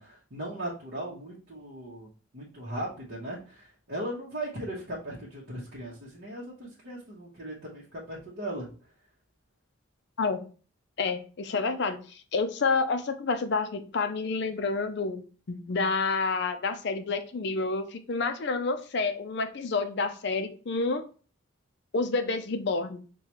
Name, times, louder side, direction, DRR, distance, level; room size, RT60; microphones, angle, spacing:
voice 1, 0.0-2.1 2.3-8.7, right 1 dB, 50° right, -7 dB, 1.0 m, -38 dB
voice 2, 11.0-15.2 15.5-21.0 21.9-23.0, left 4 dB, 55° left, 9 dB, 0.4 m, -29 dB
5.6 x 2.3 x 2.9 m, 0.38 s
head